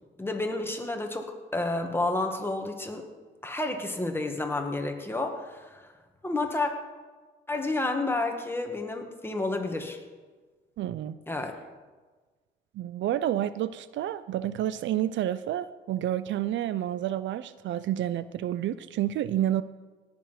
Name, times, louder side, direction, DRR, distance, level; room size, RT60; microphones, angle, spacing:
voice 1, 0.2-3.1 3.4-5.9 6.2-6.7 7.5-10.0 11.3-11.5, left 2 dB, 10° left, 3 dB, 2.0 m, -30 dB
voice 2, 10.8-11.2 12.7-19.6, right 12 dB, 70° right, 16 dB, 0.5 m, -29 dB
18.0 x 7.1 x 5.9 m, 1.3 s
cardioid pair, 90°, 20 cm